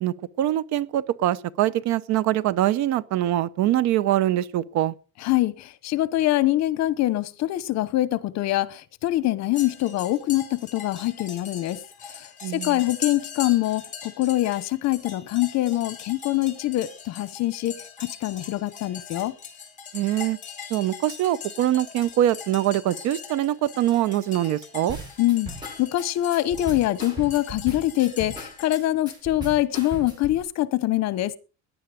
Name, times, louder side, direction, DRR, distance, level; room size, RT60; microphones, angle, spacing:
voice 1, 0.0-4.9 12.4-12.8 19.9-20.4 20.7-25.0, right 13 dB, 70° right, 0.8 m, -23 dB
voice 2, 5.2-11.8 12.5-19.3 25.2-25.5 25.8-31.3, left 15 dB, 65° left, 1.1 m, -24 dB
sound 1, 9.5-28.8, left 7 dB, 25° left, 3.9 m, -41 dB
sound 2, 24.9-30.4, right 1 dB, 15° right, 7.5 m, -37 dB
17.0 x 10.0 x 5.0 m
cardioid pair, 165°, 29 cm